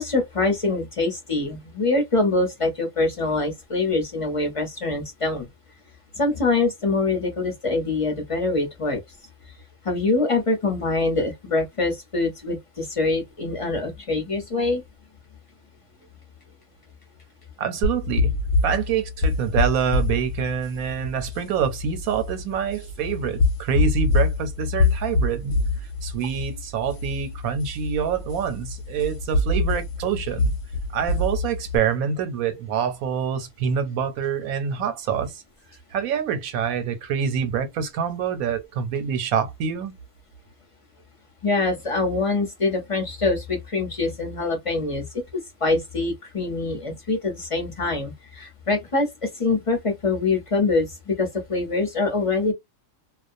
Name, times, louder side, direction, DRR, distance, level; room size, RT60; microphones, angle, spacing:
voice 1, 0.0-5.5 6.2-9.0 9.8-14.8 41.4-45.2 45.6-52.5, left 3 dB, 30° left, 0.8 m, -24 dB
voice 2, 17.6-18.3 18.6-25.6 26.0-30.5 30.9-35.4 35.9-40.0, right 7 dB, 80° right, 1.2 m, -26 dB
sound 1, 17.8-31.8, left 3 dB, 65° left, 0.9 m, -25 dB
2.4 x 2.2 x 2.5 m
omnidirectional pair, 1.5 m